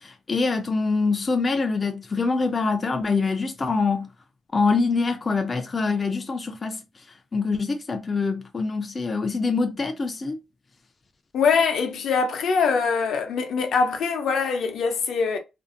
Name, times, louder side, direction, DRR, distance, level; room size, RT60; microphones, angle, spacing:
voice 1, 0.0-4.1 4.5-6.8 7.3-10.4, left 4 dB, 25° left, 0.3 m, -24 dB
voice 2, 11.3-15.4, left 5 dB, 75° left, 0.6 m, -23 dB
2.5 x 2.4 x 2.4 m
wide cardioid pair, 145°, 0 cm